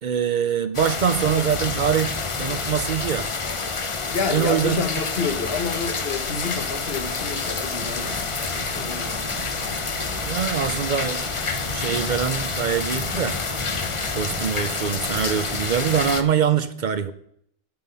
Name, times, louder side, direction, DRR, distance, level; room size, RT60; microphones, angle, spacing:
voice 1, 0.0-3.3 4.3-4.8 10.2-11.3 11.7-13.4 14.1-17.1, right 8 dB, 55° right, 12 dB, 0.6 m, -24 dB
sound 1, 0.7-16.2, left 4 dB, 35° left, 0.8 m, -28 dB
voice 2, 4.1-9.2, left 5 dB, 75° left, 8 dB, 1.3 m, -29 dB
sound 2, 7.8-14.5, right 1 dB, 25° right, 1.0 m, -40 dB
9.3 x 7.6 x 5.3 m, 0.69 s
omnidirectional pair, 1.0 m